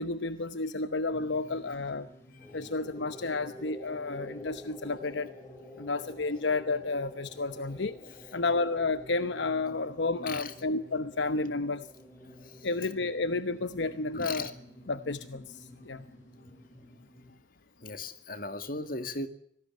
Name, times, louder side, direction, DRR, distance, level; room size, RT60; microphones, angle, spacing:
voice 1, 0.0-2.1 2.5-5.3 5.8-8.0 8.3-11.9 12.6-14.5 14.9-16.0, left 3 dB, 70° left, 13 dB, 0.9 m, -31 dB
sound 1, 1.1-17.4, equal, 15° left, 3.2 m, -49 dB
voice 2, 14.1-14.5 17.8-19.3, left 3 dB, 45° left, 10 dB, 2.2 m, -37 dB
25.5 x 19.0 x 8.5 m, 0.69 s
head